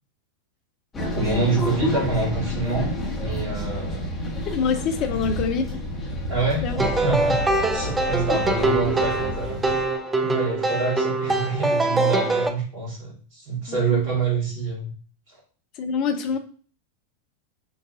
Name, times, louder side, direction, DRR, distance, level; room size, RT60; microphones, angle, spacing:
sound 1, 0.9-9.9, left 1 dB, 20° left, 1.3 m, -29 dB
voice 1, 1.1-4.1 5.1-5.2 6.3-7.4 7.7-9.6 10.2-14.9 15.3-15.4, right 3 dB, 45° right, 2.0 m, -26 dB
voice 2, 4.5-5.6 6.6-6.8 13.7-14.0 15.8-16.4, left 6 dB, 40° left, 0.6 m, -25 dB
sound 2, 6.8-12.5, right 2 dB, 10° right, 0.5 m, -23 dB
6.1 x 2.6 x 2.6 m
figure-of-eight pair, 90°, 0 cm